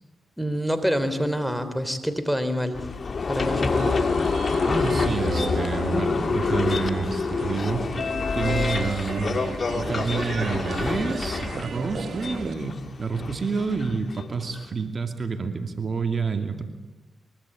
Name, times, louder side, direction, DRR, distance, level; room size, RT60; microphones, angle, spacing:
voice 1, 0.4-2.9 3.3-3.9, equal, ahead, 10 dB, 3.4 m, -26 dB
sound 1, 2.7-14.6, left 4 dB, 55° left, 2.0 m, -27 dB
sound 2, 3.4-12.5, right 6 dB, 70° right, 1.0 m, -36 dB
voice 2, 4.7-9.5 9.7-16.6, right 4 dB, 50° right, 6 dB, 2.6 m, -28 dB
24.0 x 23.0 x 8.6 m, 1.0 s
cardioid pair, 60°, 0 cm